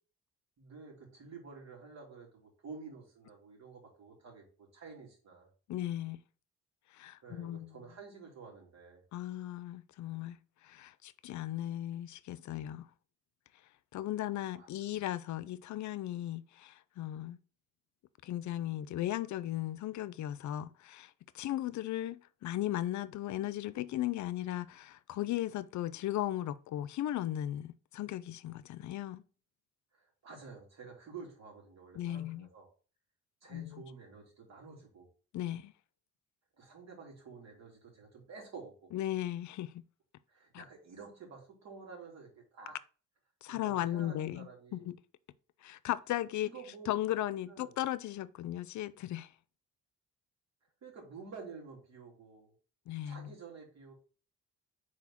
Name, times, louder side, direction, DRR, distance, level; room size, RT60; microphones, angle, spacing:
voice 1, 0.6-5.5 7.2-9.0 14.5-14.7 29.9-32.7 33.4-35.1 36.6-38.9 40.3-42.8 43.5-44.8 46.4-47.0 47.5-47.8 50.8-52.5 53.0-53.9, right 5 dB, 60° right, 3.0 m, -50 dB
voice 2, 5.7-6.2 6.9-7.7 9.1-12.9 13.9-17.4 18.2-29.2 32.0-32.5 33.5-33.8 35.3-35.7 38.9-39.8 40.5-40.6 43.4-44.5 44.7-45.0 45.6-46.5 46.9-49.3 52.9-53.3, left 13 dB, 70° left, 0.6 m, -36 dB
4.8 x 4.3 x 5.7 m
cardioid pair, 90°, 30 cm